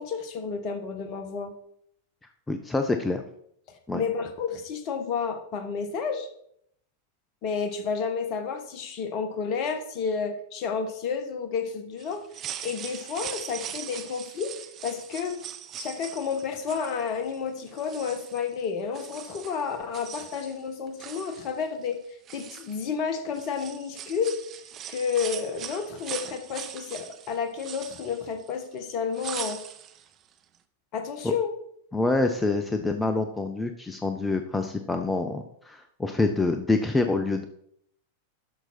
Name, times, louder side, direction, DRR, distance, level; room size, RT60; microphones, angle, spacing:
voice 1, 0.0-1.5 3.9-6.3 7.4-12.2 12.6-14.5 14.8-15.4 15.8-22.0 22.3-24.4 24.9-29.6 30.9-31.5, left 6 dB, 40° left, 8 dB, 1.3 m, -31 dB
voice 2, 2.5-3.2 3.9-4.0 31.2-31.3 31.9-37.4, left 3 dB, 10° left, 6 dB, 0.7 m, -26 dB
sound 1, 12.0-17.4 17.7-18.7 18.9-20.6 20.9-21.9 22.3-23.0 23.3-28.8 29.1-30.1 30.3-30.4, right 10 dB, 30° right, 0.7 m, -40 dB
11.5 x 6.1 x 4.3 m, 0.70 s
figure-of-eight pair, 90°, 0 cm